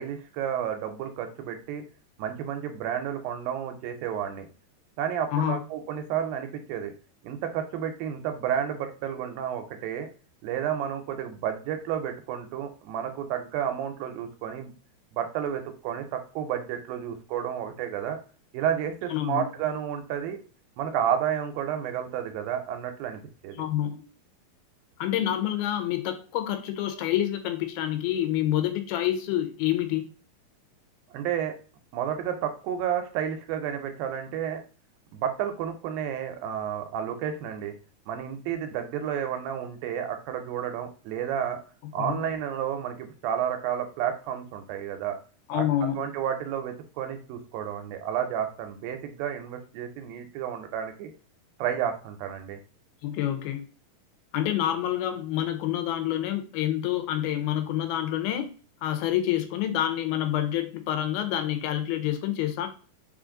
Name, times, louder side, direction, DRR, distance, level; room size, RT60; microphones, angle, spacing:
voice 1, 0.0-1.8 2.2-4.5 5.0-6.9 7.2-10.1 10.4-14.7 15.1-18.2 18.5-20.4 20.8-23.6 31.1-31.5 31.9-34.6 35.1-37.7 38.1-41.6 41.9-45.2 45.5-45.7 46.0-51.1 51.6-52.6, right 9 dB, 80° right, 2.4 m, -31 dB
voice 2, 19.1-19.4 23.6-24.0 25.0-30.1 42.0-42.2 45.5-46.0 53.0-53.6 54.3-58.5 58.8-62.7, left 12 dB, 85° left, 2.6 m, -27 dB
5.6 x 2.5 x 3.6 m
omnidirectional pair, 4.2 m